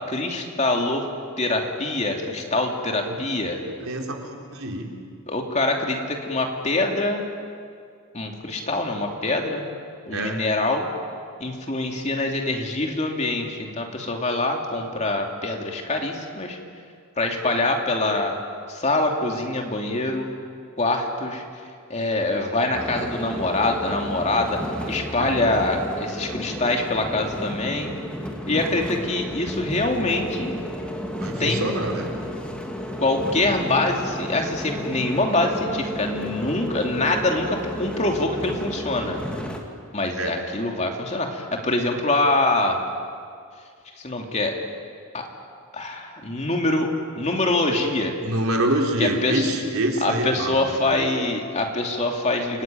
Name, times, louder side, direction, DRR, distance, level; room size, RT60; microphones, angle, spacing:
voice 1, 0.1-1.1 1.4-3.6 5.3-7.2 8.1-9.6 10.1-10.9 11.4-16.6 17.2-18.4 18.7-20.3 20.8-21.4 21.9-24.6 24.9-27.9 28.5-30.5 31.4-31.7 33.0-39.2 39.9-42.8 44.0-44.6 45.1-45.2 45.7-46.9 47.2-48.1 49.0-49.5 50.0-52.6, left 2 dB, 35° left, 2 dB, 2.9 m, -24 dB
voice 2, 3.6-4.9 10.1-10.4 25.2-25.3 31.1-32.1 40.2-40.3 48.2-51.0, right 1 dB, 80° right, 1 dB, 4.0 m, -26 dB
sound 1, 22.7-39.6, equal, 5° left, 2.4 m, -32 dB
30.0 x 19.0 x 9.4 m, 2.2 s
head